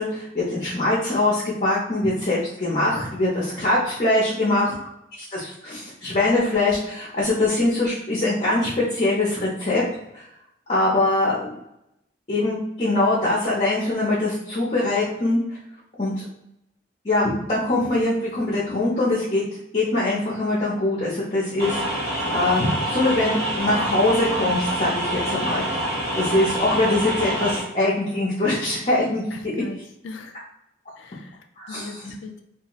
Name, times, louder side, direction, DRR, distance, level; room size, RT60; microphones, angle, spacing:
voice 1, 0.0-4.7 5.2-9.8 10.1-10.2 10.7-11.6 12.3-15.4 16.0-16.3 17.0-19.4 19.7-29.5 31.6-32.1, left 2 dB, 35° left, -7 dB, 0.6 m, -23 dB
voice 2, 4.3-4.8 29.3-29.8 30.0-30.4 31.0-31.4 31.7-32.4, left 3 dB, 85° left, 6 dB, 0.4 m, -38 dB
sound 1, 21.6-27.6, right 1 dB, 55° right, 1.1 m, -26 dB
2.7 x 2.3 x 2.9 m, 0.82 s
head